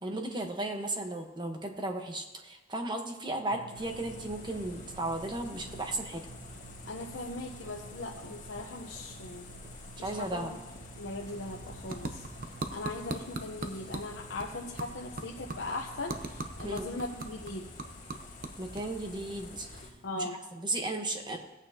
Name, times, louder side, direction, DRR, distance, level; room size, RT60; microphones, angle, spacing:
voice 1, 0.0-6.2 10.0-10.5 16.6-16.9 18.6-19.8 20.2-21.4, right 2 dB, 25° right, 3 dB, 1.1 m, -35 dB
Drum, 3.5-16.5, right 3 dB, 75° right, 0.6 m, -52 dB
sound 1, 3.7-19.9, left 2 dB, 45° left, 1.9 m, -49 dB
voice 2, 6.9-9.5 10.0-10.6 11.0-12.3 12.7-17.7 20.0-20.4, left 2 dB, 75° left, -1 dB, 0.9 m, -39 dB
sound 2, 10.9-20.4, right 2 dB, 50° right, 0.8 m, -43 dB
17.0 x 8.7 x 2.9 m, 1.1 s
head